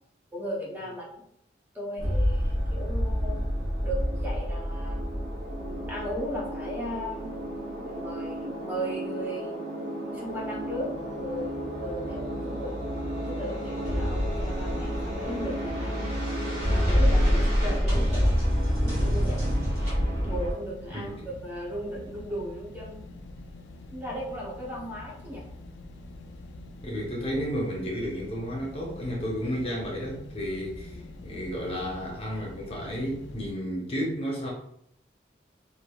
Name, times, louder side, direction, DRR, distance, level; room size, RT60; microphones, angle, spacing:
voice 1, 0.3-1.2 1.7-3.5 3.8-5.0 5.5-7.4 7.7-9.6 10.1-12.9 13.2-16.1 16.7-18.3 18.8-19.5 20.2-23.1 23.9-25.5 30.9-31.2, equal, 10° right, -4 dB, 0.7 m, -36 dB
sound 1, 2.0-20.5, equal, 35° right, 1.3 m, -28 dB
sound 2, 13.9-33.5, left 2 dB, 80° left, 0.3 m, -45 dB
voice 2, 20.9-21.3 26.8-34.5, equal, 30° left, -2 dB, 0.7 m, -32 dB
3.2 x 2.5 x 2.2 m, 0.72 s
head